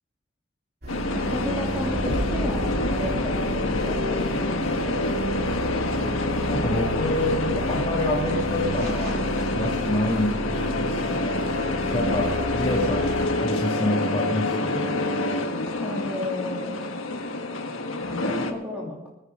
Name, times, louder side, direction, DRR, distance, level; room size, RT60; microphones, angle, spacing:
sound 1, 0.8-13.3, right 1 dB, 45° right, 3.1 m, -32 dB
sound 2, 0.9-18.5, left 2 dB, 75° left, 1.4 m, -27 dB
voice 1, 1.1-5.0 15.8-16.8 18.0-19.1, left 1 dB, 5° right, -3 dB, 2.9 m, -33 dB
voice 2, 6.5-9.3 9.5-11.5 11.9-14.9, left 1 dB, 25° left, -4 dB, 2.1 m, -27 dB
23.5 x 9.7 x 3.8 m, 0.90 s
head